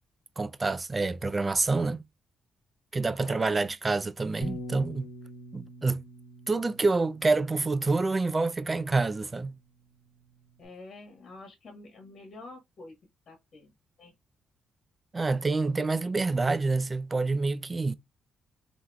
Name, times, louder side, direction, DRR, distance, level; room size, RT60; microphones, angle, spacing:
voice 1, 0.4-2.1 2.9-5.1 5.5-6.0 6.5-9.6 15.1-17.9, right 3 dB, 30° right, 0.4 m, -27 dB
voice 2, 3.2-3.7 10.6-13.0 13.3-13.7 14.0-14.1, left 2 dB, 55° left, 1.5 m, -47 dB
Bass guitar, 4.4-10.6, left 1 dB, 70° left, 1.1 m, -46 dB
3.6 x 3.0 x 2.3 m
supercardioid pair, 55°, 0 cm